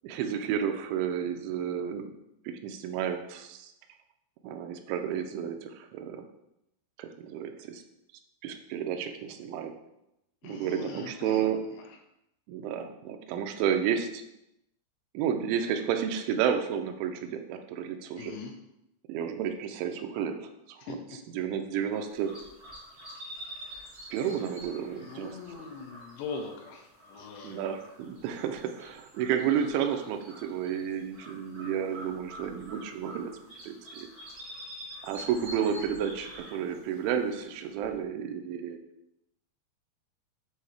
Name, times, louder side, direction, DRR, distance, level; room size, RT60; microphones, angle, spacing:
voice 1, 0.0-2.1 2.5-3.7 4.4-6.3 7.0-7.8 8.4-9.7 10.4-11.6 12.5-14.2 15.1-18.3 19.1-20.9 21.3-22.3 24.1-25.4 27.4-33.3 33.6-34.1 35.0-38.8, right 8 dB, 85° right, 6 dB, 2.9 m, -31 dB
voice 2, 10.4-12.0 18.2-18.5 20.8-21.0 25.0-27.7, left 5 dB, 80° left, 2 dB, 2.7 m, -41 dB
sound 1, 21.9-37.9, equal, 60° right, 0.9 m, -47 dB
7.7 x 2.8 x 4.8 m, 0.85 s
omnidirectional pair, 5.3 m